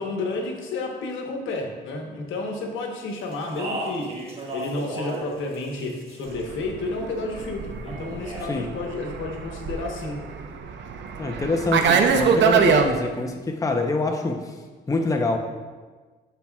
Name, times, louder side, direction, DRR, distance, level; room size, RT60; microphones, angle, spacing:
voice 1, 0.0-10.2, left 2 dB, 80° left, 2 dB, 1.1 m, -31 dB
Speech, 3.3-5.3 5.5-6.4 7.9-8.5, right 1 dB, 30° right, 1.6 m, -34 dB
Fixed-wing aircraft airplane, 6.4-12.9, right 6 dB, 65° right, 0.6 m, -23 dB
voice 2, 11.2-14.6 14.9-15.4, left 2 dB, 15° left, 3 dB, 0.6 m, -25 dB
11.5 x 4.2 x 2.3 m, 1.4 s
cardioid pair, 90°, 20 cm